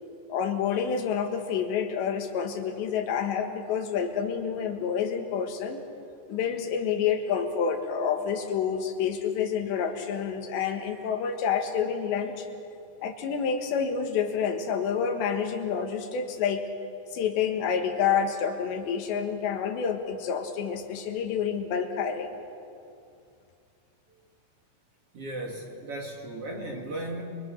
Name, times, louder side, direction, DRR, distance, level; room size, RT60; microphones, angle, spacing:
voice 1, 0.3-5.8 6.3-12.5 13.0-16.6 17.1-22.3, left 7 dB, 80° left, 5 dB, 4.0 m, -28 dB
voice 2, 25.1-27.2, right 1 dB, 40° right, 0 dB, 2.5 m, -36 dB
29.5 x 23.5 x 6.5 m, 2.5 s
omnidirectional pair, 5.0 m